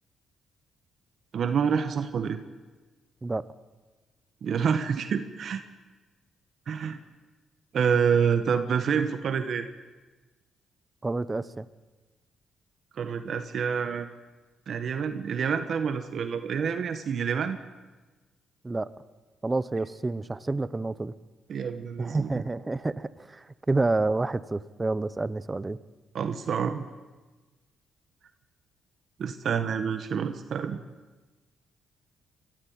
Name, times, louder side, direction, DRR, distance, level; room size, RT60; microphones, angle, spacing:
voice 1, 1.3-2.4 4.4-5.6 6.7-7.0 7.7-9.7 13.0-14.1 14.7-17.6 21.5-22.4 26.1-26.8 29.2-30.8, right 6 dB, 60° right, 9 dB, 1.3 m, -27 dB
voice 2, 11.0-11.7 18.6-18.9 19.4-21.1 22.0-25.8, right 2 dB, 20° right, 16 dB, 0.8 m, -29 dB
22.5 x 14.0 x 8.8 m, 1.3 s
cardioid pair, 90°, 0 cm